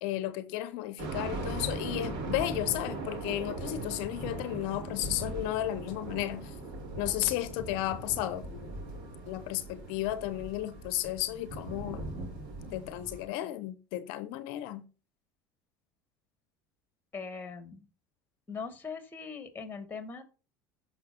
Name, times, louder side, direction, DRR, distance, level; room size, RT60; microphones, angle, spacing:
voice 1, 0.0-6.6 7.0-8.7 9.3-12.0 12.7-14.9, left 14 dB, 70° left, 0.7 m, -33 dB
sound 1, 1.0-13.3, right 2 dB, 60° right, 4.1 m, -39 dB
voice 2, 17.1-17.8 18.5-20.2, left 5 dB, 20° left, 2.2 m, -40 dB
14.5 x 5.6 x 2.9 m
hypercardioid pair, 90°, 9 cm